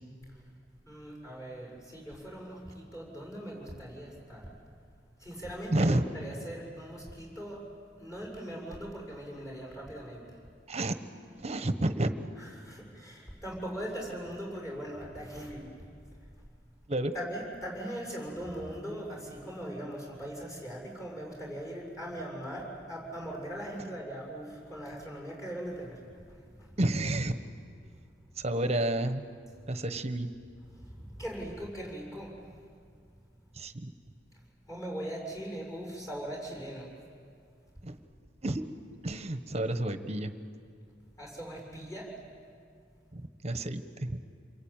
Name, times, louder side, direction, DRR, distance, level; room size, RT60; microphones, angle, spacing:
voice 1, 0.9-4.5 5.2-7.7 8.0-10.4 12.4-15.7 17.1-26.7 30.7-32.4 34.7-36.9 41.2-42.2, right 1 dB, 20° left, -1 dB, 6.8 m, -40 dB
voice 2, 5.7-6.1 10.7-10.9 11.4-12.1 16.9-17.1 26.8-27.3 28.4-29.3 29.7-30.3 33.5-33.9 37.8-38.0 38.4-38.6 39.0-40.3 43.1-44.2, right 1 dB, 35° right, 9 dB, 1.2 m, -30 dB
29.5 x 22.5 x 8.9 m, 2.3 s
head